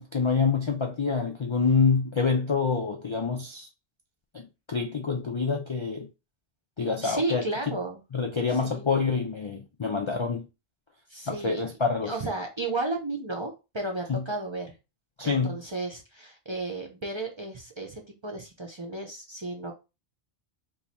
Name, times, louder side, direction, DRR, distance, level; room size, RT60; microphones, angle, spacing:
voice 1, 0.0-3.7 4.3-6.1 6.8-7.8 8.1-10.5 11.3-12.1 14.1-14.2 15.2-15.6, left 5 dB, 45° left, 0.4 m, -27 dB
voice 2, 7.0-8.0 8.5-8.9 11.1-11.6 12.0-14.7 15.2-19.7, right 2 dB, 35° right, 0.5 m, -33 dB
3.1 x 2.4 x 4.0 m
omnidirectional pair, 1.1 m